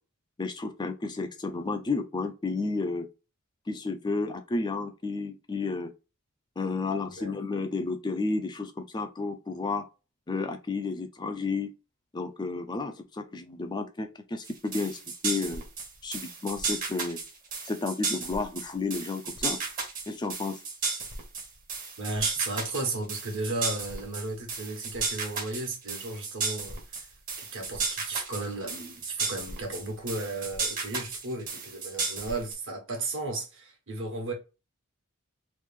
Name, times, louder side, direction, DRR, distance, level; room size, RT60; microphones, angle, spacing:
voice 1, 0.4-3.1 3.7-5.9 6.6-9.8 10.3-11.7 12.1-15.6 16.0-17.2 17.7-19.6 20.1-20.6, left 3 dB, 20° left, 0.4 m, -32 dB
voice 2, 7.1-7.4 22.0-27.1 27.4-34.3, right 2 dB, 60° right, 1.3 m, -34 dB
sound 1, 14.4-32.5, right 4 dB, 40° right, 1.0 m, -34 dB
3.2 x 2.5 x 3.4 m
head